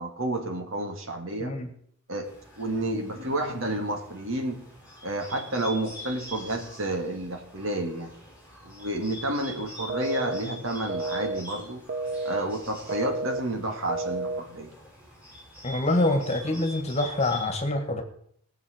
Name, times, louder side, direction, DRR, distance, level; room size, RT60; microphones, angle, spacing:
voice 1, 0.0-1.6 2.1-2.3 2.6-4.6 5.0-8.1 8.6-11.8 12.2-14.7, right 1 dB, 65° right, 4 dB, 2.0 m, -30 dB
Bird, 2.2-17.4, equal, 5° right, 4.9 m, -45 dB
sound 1, 9.9-10.4 10.9-11.4 11.9-12.4 12.9-13.4 13.9-14.4, right 3 dB, 40° right, 0.6 m, -30 dB
voice 2, 15.6-18.0, left 2 dB, 30° left, 5 dB, 1.8 m, -26 dB
19.0 x 7.1 x 5.0 m, 0.65 s
head